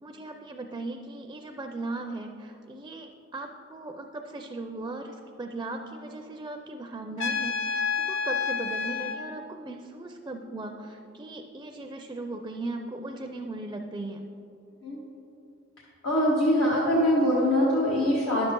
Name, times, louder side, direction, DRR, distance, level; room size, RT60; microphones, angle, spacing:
voice 1, 0.0-14.2, right 2 dB, 20° right, 4 dB, 0.4 m, -38 dB
Trumpet, 7.2-9.2, left 5 dB, 65° left, 0.6 m, -29 dB
voice 2, 16.0-18.5, equal, 85° left, -6 dB, 1.3 m, -23 dB
10.5 x 7.0 x 3.7 m, 2.8 s
head